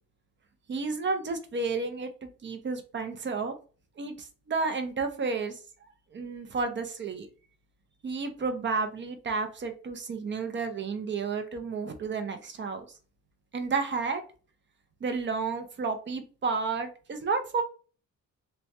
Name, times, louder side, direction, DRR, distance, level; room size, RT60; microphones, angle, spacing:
voice 1, 0.7-3.5 4.0-7.3 8.0-12.9 13.5-14.2 15.0-17.6, right 4 dB, 35° right, 7 dB, 0.5 m, -31 dB
3.0 x 2.2 x 2.7 m, 0.38 s
wide cardioid pair, 155°, 35 cm